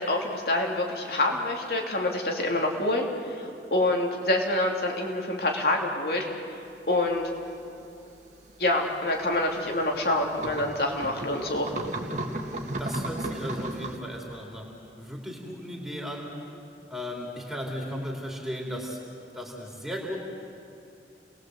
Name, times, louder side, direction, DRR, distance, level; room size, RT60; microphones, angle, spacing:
voice 1, 0.0-6.2 6.9-7.3 8.6-11.7, left 1 dB, 60° left, 0 dB, 3.1 m, -26 dB
sound 1, 6.7-6.8 8.1-8.2 8.5-14.0, right 1 dB, 45° right, 2.1 m, -34 dB
voice 2, 12.8-14.7 15.0-16.3 16.9-19.0 19.3-20.2, equal, 5° right, -2 dB, 3.4 m, -35 dB
29.5 x 20.5 x 7.9 m, 2.6 s
head